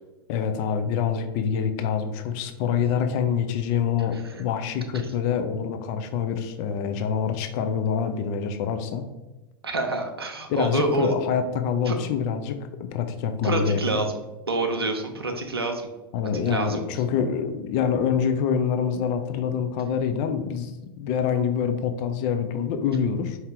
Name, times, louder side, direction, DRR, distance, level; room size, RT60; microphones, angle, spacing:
voice 1, 0.3-9.1 10.5-14.0 16.1-20.7 21.0-23.4, left 7 dB, 45° left, 8 dB, 0.5 m, -26 dB
voice 2, 4.1-4.4 4.9-5.1 9.6-11.2 11.9-12.0 13.4-14.1 14.5-15.9 16.5-16.8, right 2 dB, 85° right, 3 dB, 0.6 m, -27 dB
4.6 x 2.8 x 3.7 m, 1.0 s
figure-of-eight pair, 95°, 12 cm